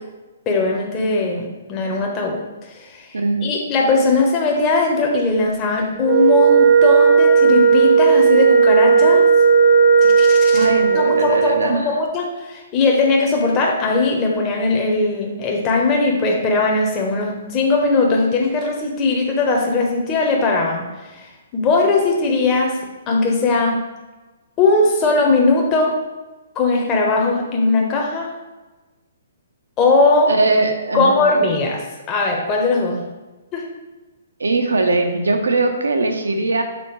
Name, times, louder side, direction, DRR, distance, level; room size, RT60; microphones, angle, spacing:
voice 1, 0.5-2.4 2.7-9.2 10.0-10.7 10.9-21.3 21.5-22.8 23.1-23.8 24.6-26.0 26.5-28.3 29.8-30.3 30.9-33.0 33.5-33.6, left 3 dB, 25° left, -1 dB, 1.0 m, -19 dB
voice 2, 3.1-3.4 10.5-11.9 30.3-31.2 34.4-36.6, right 3 dB, 75° right, 5 dB, 0.9 m, -20 dB
Wind instrument woodwind instrument, 6.0-11.6, right 5 dB, 40° right, 0.8 m, -13 dB
6.9 x 4.4 x 3.2 m, 1.2 s
figure-of-eight pair, 125°, 0 cm